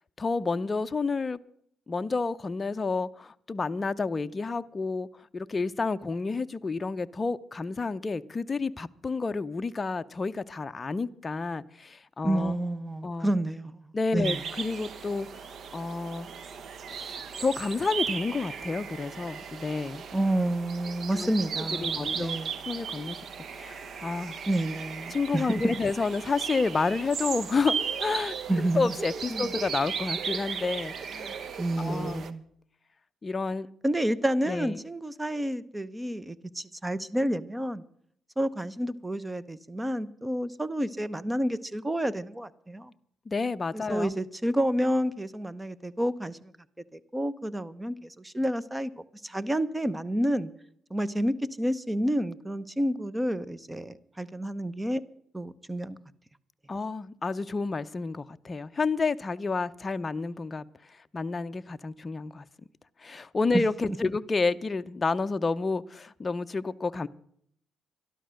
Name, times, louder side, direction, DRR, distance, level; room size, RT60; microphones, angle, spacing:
voice 1, 0.2-1.4 1.9-12.5 13.0-13.3 13.9-15.3 15.7-16.3 16.9-20.1 21.1-21.3 21.6-22.4 22.7-23.2 23.5-24.4 25.1-27.7 28.0-28.3 28.7-31.4 31.8-32.3 33.2-33.7 34.5-34.8 43.3-44.1 56.7-62.4 63.0-67.1, left 4 dB, 30° left, 0.6 m, -30 dB
voice 2, 12.2-13.8 14.1-14.4 20.1-22.6 24.5-25.7 28.5-28.9 29.3-29.5 31.6-32.4 33.8-37.8 38.4-42.9 43.7-46.5 46.9-48.9 49.2-50.5 50.9-55.0 55.3-56.0 63.5-63.6, right 1 dB, 10° right, 0.8 m, -29 dB
sound 1, 14.2-32.3, right 6 dB, 55° right, 1.0 m, -36 dB
12.5 x 12.5 x 6.4 m
cardioid pair, 90°, 0 cm